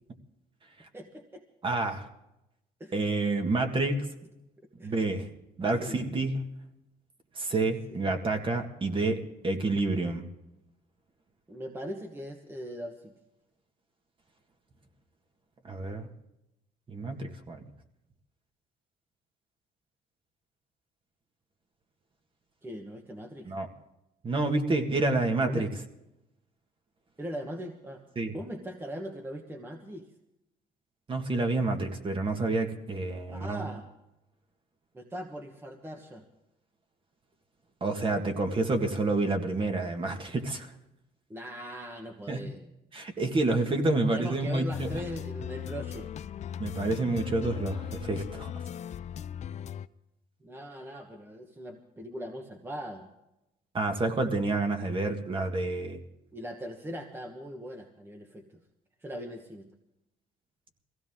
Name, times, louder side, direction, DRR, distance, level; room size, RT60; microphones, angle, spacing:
voice 1, 0.9-1.4 2.8-2.9 4.8-4.9 5.8-6.0 7.9-8.1 11.5-13.1 22.6-23.5 25.4-25.7 27.2-28.0 28.3-30.1 33.3-33.9 34.9-36.2 41.3-42.7 44.1-46.1 50.4-53.1 56.3-58.5 59.0-59.7, equal, 15° right, 3 dB, 1.3 m, -40 dB
voice 2, 1.6-2.1 2.9-4.0 4.8-5.3 5.6-6.5 7.4-10.3 15.6-16.1 16.9-17.6 23.4-23.7 24.2-25.7 28.2-28.3 31.1-33.7 37.8-40.7 42.3-42.4 42.9-44.9 46.6-48.5 53.7-56.0, right 2 dB, 30° right, 4 dB, 1.8 m, -29 dB
sound 1, 44.7-49.9, left 9 dB, 45° left, 0.5 m, -38 dB
22.0 x 16.0 x 3.7 m, 0.89 s
cardioid pair, 110°, 17 cm